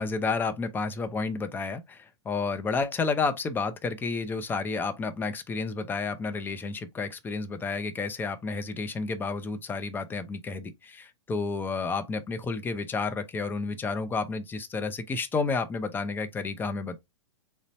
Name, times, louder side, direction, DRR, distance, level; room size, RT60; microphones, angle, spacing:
voice 1, 0.0-17.0, left 4 dB, 10° left, 0.5 m, -31 dB
3.9 x 2.1 x 3.9 m
figure-of-eight pair, 105°, 16 cm